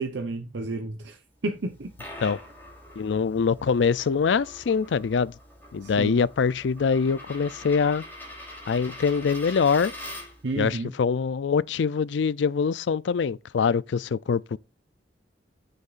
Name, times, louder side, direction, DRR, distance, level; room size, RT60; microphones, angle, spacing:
voice 1, 0.0-1.9 5.8-6.2 10.4-10.9, right 2 dB, 85° right, 0.8 m, -31 dB
Coin (dropping), 1.6-10.5, left 1 dB, 10° left, 3.4 m, -43 dB
voice 2, 3.0-5.3 5.7-8.0 8.7-9.9 10.6-14.6, left 5 dB, 85° left, 0.4 m, -24 dB
14.5 x 6.6 x 2.5 m
head